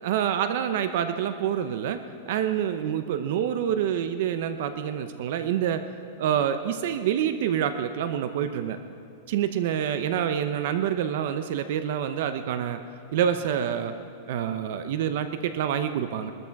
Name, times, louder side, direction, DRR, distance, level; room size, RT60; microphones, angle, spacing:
voice 1, 0.0-5.8 6.2-8.8 9.3-12.8 13.1-13.9 14.3-16.3, right 9 dB, 50° right, 9 dB, 0.7 m, -27 dB
22.5 x 13.0 x 4.7 m, 2.4 s
supercardioid pair, 175°, 0 cm